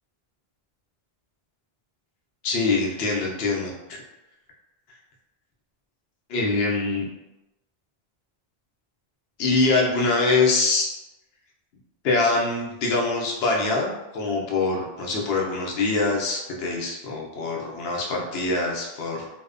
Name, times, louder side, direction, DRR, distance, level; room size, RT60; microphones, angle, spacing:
voice 1, 2.4-4.0 6.3-7.1 9.4-10.9 12.0-19.3, left 3 dB, 75° left, -1 dB, 0.8 m, -24 dB
2.7 x 2.0 x 2.4 m, 0.98 s
omnidirectional pair, 1.0 m